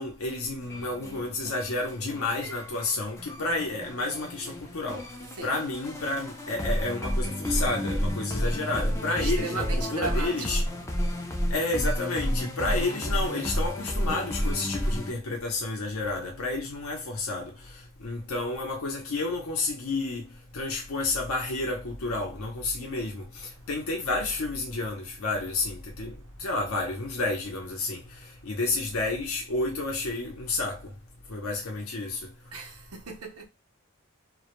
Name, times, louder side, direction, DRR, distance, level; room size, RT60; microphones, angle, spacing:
voice 1, 0.0-5.1 5.4-10.6 11.5-30.9 31.3-32.3, left 2 dB, 65° left, 0.6 m, -31 dB
sound 1, 0.6-15.1, equal, 15° left, 0.3 m, -31 dB
voice 2, 9.2-10.5 32.5-33.5, right 3 dB, 85° right, 0.6 m, -36 dB
2.1 x 2.0 x 2.9 m
head